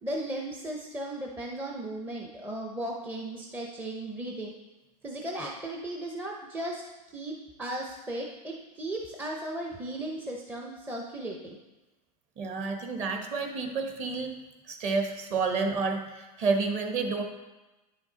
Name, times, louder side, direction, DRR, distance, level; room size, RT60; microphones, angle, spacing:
voice 1, 0.0-4.5 5.0-6.8 7.1-11.6, right 1 dB, 10° right, -1 dB, 0.6 m, -36 dB
voice 2, 12.4-14.3 14.7-17.2, right 4 dB, 35° right, 4 dB, 1.1 m, -29 dB
9.7 x 5.8 x 3.9 m, 1.1 s
supercardioid pair, 145°, 21 cm